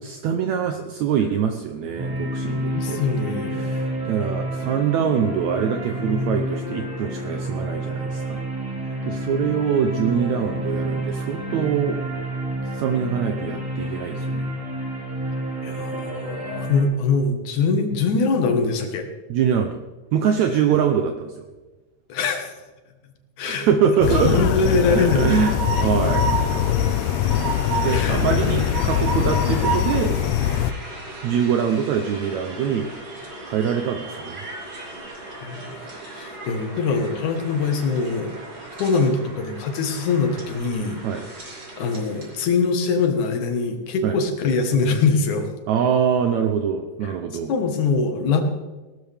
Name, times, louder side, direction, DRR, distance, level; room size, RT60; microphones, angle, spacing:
voice 1, 0.0-3.0 3.5-8.4 9.0-12.0 12.7-14.5 19.3-19.8 20.1-21.3 23.4-26.3 27.8-30.1 31.2-32.9 33.5-34.4 41.0-41.2 44.0-44.2 45.7-47.5, right 7 dB, 70° right, 5 dB, 1.9 m, -23 dB
sound 1, 2.0-16.8, right 1 dB, 5° right, 3.4 m, -29 dB
voice 2, 2.7-3.7 15.6-19.1 22.1-22.5 23.4-23.7 24.1-25.4 27.9-28.7 35.4-35.8 36.1-38.4 38.8-41.0 41.8-45.5 47.5-48.4, left 4 dB, 70° left, 5 dB, 2.8 m, -23 dB
sound 2, 24.0-30.7, left 11 dB, 85° left, 1.5 m, -22 dB
Train, 24.6-42.4, right 4 dB, 40° right, 3.9 m, -33 dB
18.5 x 13.0 x 3.5 m, 1.2 s
omnidirectional pair, 3.7 m